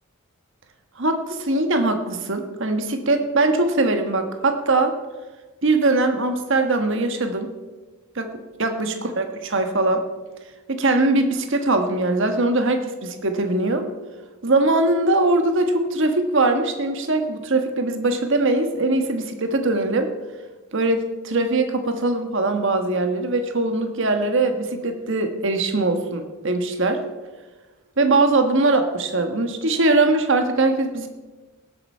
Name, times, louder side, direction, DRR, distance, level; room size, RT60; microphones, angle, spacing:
voice 1, 1.0-4.9 5.6-7.5 8.1-8.3 8.6-10.0 10.7-13.9 14.4-20.1 20.7-27.0 28.0-31.1, right 2 dB, 60° right, 6 dB, 1.4 m, -21 dB
18.0 x 7.9 x 5.6 m, 1.3 s
head